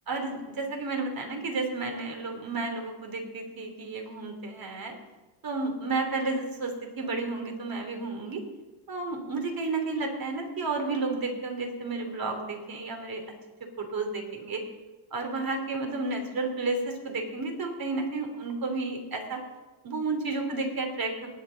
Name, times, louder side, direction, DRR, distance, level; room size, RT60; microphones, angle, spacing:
voice 1, 0.1-4.9 5.4-8.4 8.9-13.2 13.8-14.6 15.1-19.4 19.8-21.3, right 3 dB, 45° right, 3 dB, 3.1 m, -32 dB
18.5 x 8.1 x 4.0 m, 1.2 s
cardioid pair, 95°, 49 cm